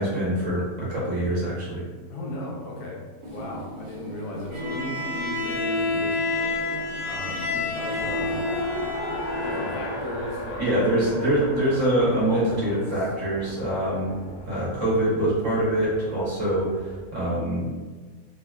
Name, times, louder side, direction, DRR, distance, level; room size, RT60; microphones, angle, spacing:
voice 1, 0.0-1.8 10.6-14.1 14.4-17.7, right 1 dB, 60° right, -7 dB, 1.1 m, -24 dB
voice 2, 2.1-6.2 7.0-8.5 9.4-11.6 12.3-12.8 13.4-13.5, left 2 dB, 75° left, -3 dB, 1.1 m, -36 dB
sound 1, 3.2-9.9, right 1 dB, 80° right, 1.2 m, -40 dB
Bowed string instrument, 4.5-10.1, left 3 dB, 30° right, 1.0 m, -29 dB
Race car auto racing, 7.9-17.0, equal, 50° left, 0.7 m, -37 dB
3.5 x 2.1 x 2.2 m, 1.4 s
omnidirectional pair, 1.7 m